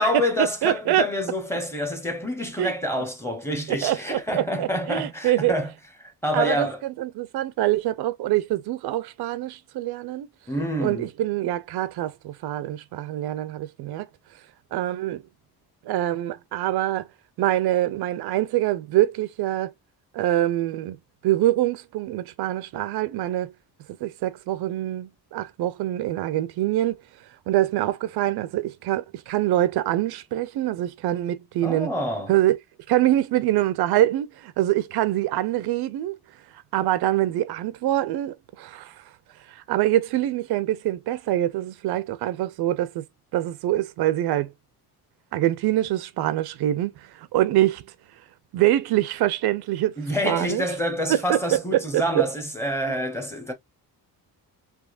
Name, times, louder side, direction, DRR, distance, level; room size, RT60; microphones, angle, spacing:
voice 1, 0.0-5.7 6.2-6.8 10.5-11.1 31.6-32.3 50.0-53.5, left 1 dB, 5° left, 0.7 m, -27 dB
voice 2, 0.6-1.0 2.6-2.7 3.7-5.5 6.3-10.3 10.8-14.1 14.7-15.2 15.9-17.1 17.4-19.7 20.1-21.0 21.2-23.5 24.0-27.0 27.5-31.9 32.3-32.6 32.9-36.2 36.7-39.0 39.5-43.0 43.3-44.5 45.3-47.8 48.5-49.9 50.3-50.6 51.1-52.3 52.9-53.0, right 14 dB, 75° right, 0.5 m, -24 dB
3.5 x 2.8 x 2.3 m
cardioid pair, 170°, 38 cm